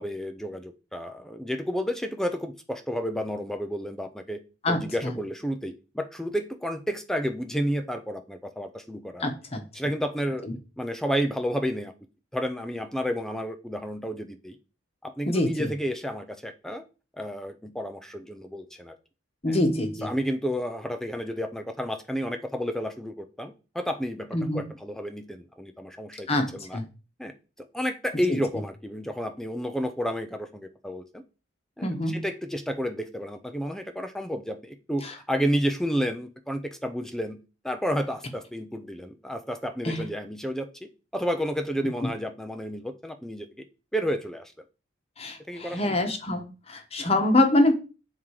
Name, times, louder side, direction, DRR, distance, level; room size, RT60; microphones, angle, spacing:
voice 1, 0.0-4.4 4.7-9.3 9.7-10.5 10.8-11.9 12.3-14.6 15.0-16.8 17.2-18.9 19.5-19.6 20.0-26.8 27.2-27.3 27.7-31.2 31.8-37.4 37.6-43.6 43.9-44.5 45.5-45.9, equal, 5° left, 0.5 m, -31 dB
voice 2, 4.6-5.1 9.2-9.6 15.3-15.7 19.4-20.1 24.3-24.7 26.3-26.8 28.3-28.4 31.8-32.2 35.0-35.1 39.8-40.1 45.2-47.7, left 1 dB, 35° left, 1.1 m, -25 dB
7.1 x 3.7 x 4.7 m
head